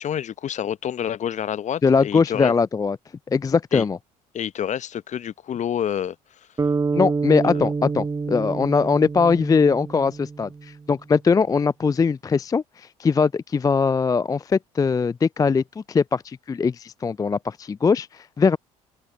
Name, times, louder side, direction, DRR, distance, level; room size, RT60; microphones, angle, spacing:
voice 1, 0.0-2.5 3.7-3.8 4.3-6.2 7.4-7.7, left 9 dB, 40° left, 0.9 m, -28 dB
voice 2, 1.8-3.0 3.3-4.0 6.9-18.6, left 5 dB, 20° left, 0.4 m, -21 dB
sound 1, 6.6-10.8, right 4 dB, 15° right, 0.8 m, -27 dB
open air
figure-of-eight pair, 55°, 20 cm